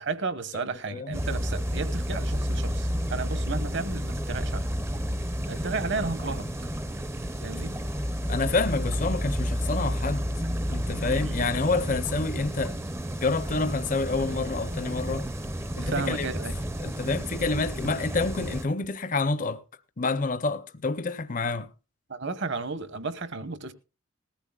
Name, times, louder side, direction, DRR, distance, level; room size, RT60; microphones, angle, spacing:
voice 1, 0.0-4.7 5.5-6.5 7.4-7.7 11.1-11.3 15.8-16.6 22.1-23.7, right 4 dB, 55° right, 1.1 m, -33 dB
voice 2, 0.9-1.2 7.5-7.6 8.3-10.3 10.7-12.8 13.2-15.3 15.8-16.3 16.8-19.6 20.0-21.7, left 3 dB, 35° left, 0.6 m, -28 dB
sound 1, 1.1-18.6, equal, 10° right, 0.5 m, -31 dB
19.5 x 14.5 x 2.3 m
head